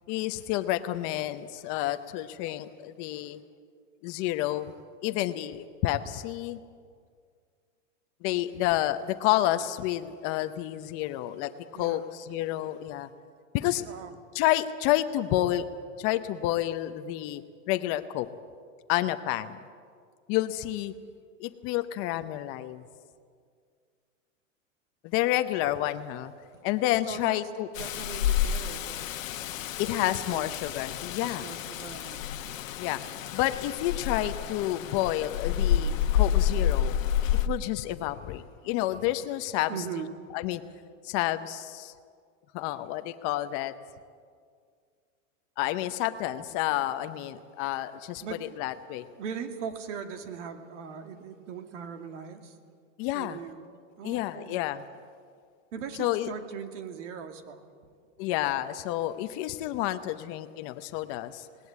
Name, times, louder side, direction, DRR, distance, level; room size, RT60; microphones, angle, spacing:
voice 1, 0.1-3.4 4.0-4.7 5.0-6.6 8.2-13.1 13.5-13.8 14.3-15.7 16.0-17.4 17.7-18.3 18.9-19.6 20.3-20.9 21.4-22.8 25.0-26.3 26.6-27.7 29.8-31.5 32.8-33.0 33.3-36.9 37.5-39.7 40.3-40.6 41.0-41.9 42.5-43.7 45.6-49.0 53.0-53.4 54.0-54.8 56.0-56.3 58.2-61.5, left 14 dB, 35° left, 11 dB, 0.8 m, -29 dB
voice 2, 11.7-12.1 13.6-14.2 26.5-26.6 27.1-27.4 27.7-29.1 29.4-30.5 31.2-32.4 39.7-40.1 48.2-48.6 49.2-52.6 53.1-53.7 54.0-54.6 55.7-57.7, right 7 dB, 65° right, 6 dB, 2.3 m, -40 dB
Rain, 27.7-37.5, left 10 dB, 85° left, 1.2 m, -29 dB
19.5 x 19.0 x 8.6 m, 2.1 s
supercardioid pair, 150°, 38 cm